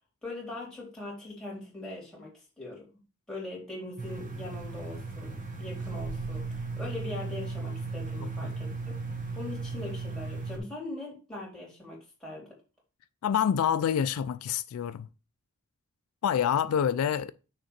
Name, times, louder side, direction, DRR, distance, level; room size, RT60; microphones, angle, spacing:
voice 1, 0.2-2.9 3.3-8.9 9.3-12.5, left 2 dB, ahead, 3.1 m, -41 dB
sound 1, 4.0-10.6, right 4 dB, 35° right, 1.1 m, -36 dB
voice 2, 13.2-15.1 16.2-17.3, left 8 dB, 75° left, 0.3 m, -27 dB
6.5 x 3.7 x 4.3 m
head